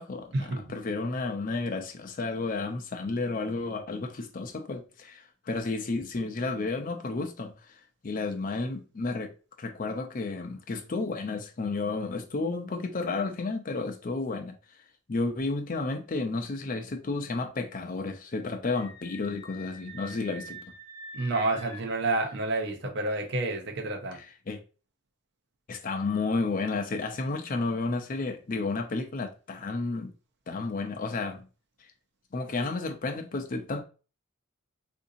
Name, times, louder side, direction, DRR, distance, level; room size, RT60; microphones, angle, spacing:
voice 1, 0.0-9.3 9.6-14.5 15.1-20.6 24.1-24.6 25.7-30.1 30.5-31.4 32.3-33.8, left 3 dB, 40° left, 0.5 m, -32 dB
Screaming, 18.6-22.0, equal, 75° left, 0.9 m, -46 dB
voice 2, 21.1-24.2, right 2 dB, 55° right, 0.6 m, -29 dB
3.7 x 2.6 x 2.6 m
head